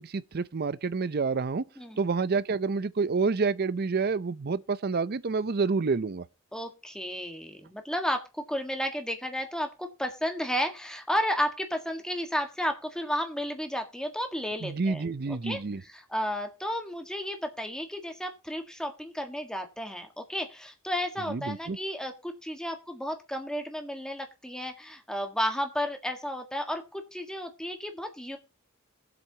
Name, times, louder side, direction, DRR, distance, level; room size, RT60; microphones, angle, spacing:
voice 1, 0.0-1.6 2.0-6.2 14.6-15.8 21.3-21.8, right 4 dB, 50° right, 0.6 m, -28 dB
voice 2, 6.5-15.0 15.4-28.4, equal, 5° left, 1.6 m, -33 dB
21.5 x 7.8 x 2.9 m
head